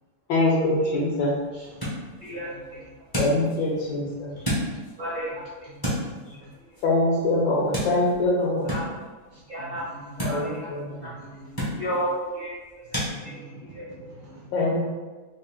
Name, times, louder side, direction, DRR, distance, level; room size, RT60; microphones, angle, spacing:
voice 1, 0.3-1.4 3.2-4.3 6.8-8.7 10.2-11.1 14.5-14.9, left 2 dB, 70° left, -3 dB, 1.2 m, -24 dB
sound 1, 0.6-13.1, equal, 35° left, 0.3 m, -35 dB
voice 2, 1.3-2.1 2.5-3.0 3.7-4.8 5.7-6.6 7.3-7.4 9.3-10.4 10.7-10.8 11.1-11.9 12.9-14.5, right 1 dB, 75° right, -4 dB, 0.9 m, -47 dB
voice 3, 2.2-2.8 4.4-4.5 5.0-5.4 6.2-6.4 8.6-8.8 9.5-9.9 10.2-10.7 11.0-11.1 11.7-13.9 14.6-14.7, equal, 55° right, -8 dB, 0.6 m, -33 dB
3.6 x 2.4 x 3.5 m, 1.3 s
omnidirectional pair, 2.3 m